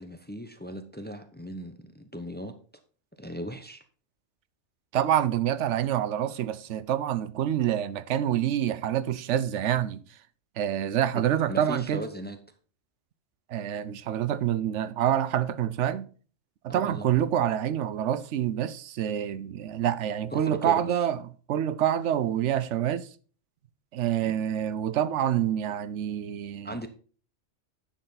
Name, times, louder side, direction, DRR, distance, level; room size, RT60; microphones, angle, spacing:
voice 1, 0.0-2.5 3.2-3.8 11.1-11.2 11.5-12.4 16.7-17.1 20.3-21.0 24.2-24.4 26.6-26.9, equal, 10° left, 0.7 m, -38 dB
voice 2, 4.9-10.0 10.6-12.0 13.5-16.1 16.6-21.2 21.5-23.1 23.9-26.8, right 10 dB, 80° right, 1.0 m, -27 dB
10.0 x 6.7 x 4.0 m
omnidirectional pair, 1.2 m